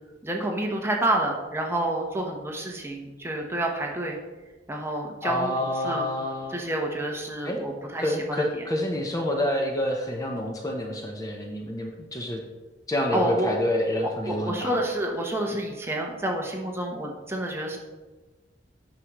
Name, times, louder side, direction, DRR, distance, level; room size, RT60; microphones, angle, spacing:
voice 1, 0.2-4.2 4.7-6.0 6.5-8.7 13.1-13.5 14.3-17.8, right 1 dB, 15° right, 0 dB, 0.9 m, -29 dB
voice 2, 5.2-6.6 7.4-7.6 8.0-12.4 12.9-14.7, left 1 dB, 20° left, 2 dB, 0.8 m, -28 dB
9.8 x 6.3 x 3.0 m, 1.2 s
head